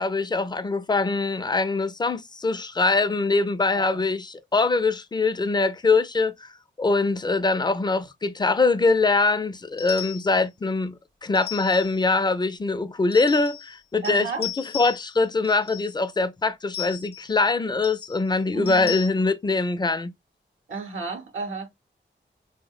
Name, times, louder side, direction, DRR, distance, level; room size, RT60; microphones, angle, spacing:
voice 1, 0.0-20.1, left 3 dB, 20° left, 0.4 m, -23 dB
sound 1, 9.8-10.4 11.4-12.0 13.1-13.8 14.0-15.2 15.4-15.9 16.7-17.3 17.8-18.2 18.7-19.1, left 13 dB, 50° left, 0.7 m, -36 dB
voice 2, 14.0-14.5 18.5-19.0 20.7-21.7, right 4 dB, 85° right, 0.7 m, -33 dB
3.4 x 2.1 x 2.3 m
cardioid pair, 50°, 20 cm